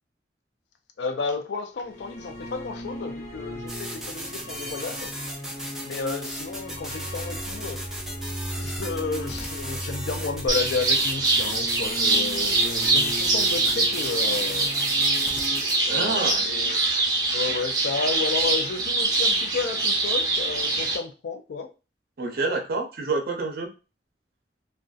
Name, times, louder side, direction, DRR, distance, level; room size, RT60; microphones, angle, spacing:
voice 1, 1.0-5.1 5.8-7.8 8.6-14.7 15.8-16.8 17.3-21.7, left 4 dB, 75° left, 6 dB, 0.4 m, -32 dB
sound 1, 1.8-15.6, equal, 45° left, 1.0 m, -37 dB
sound 2, 3.7-15.8, right 1 dB, 5° right, 0.3 m, -37 dB
sound 3, 10.5-21.0, right 3 dB, 25° right, 0.7 m, -24 dB
voice 2, 15.9-16.4 22.2-23.7, right 3 dB, 55° right, 3 dB, 0.5 m, -28 dB
2.5 x 2.2 x 2.3 m, 0.31 s
head